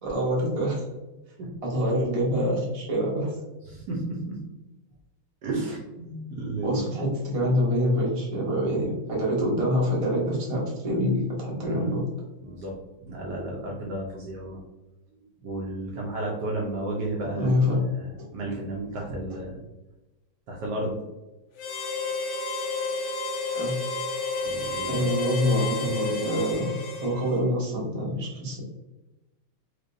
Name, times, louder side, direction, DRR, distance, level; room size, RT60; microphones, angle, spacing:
voice 1, 0.0-0.8 1.6-3.4 6.6-12.0 17.4-17.8 23.5-23.8 24.9-26.8 27.0-28.6, equal, 40° right, -5 dB, 0.5 m, -26 dB
voice 2, 3.7-4.4 5.4-6.8 11.6-12.0 12.4-12.8 13.0-14.6 15.4-19.6 20.5-21.0 24.4-25.0, right 2 dB, 70° right, -2 dB, 1.1 m, -33 dB
Harmonica, 21.6-27.5, left 3 dB, 65° left, 1.1 m, -31 dB
4.8 x 2.2 x 2.5 m, 1.1 s
omnidirectional pair, 2.3 m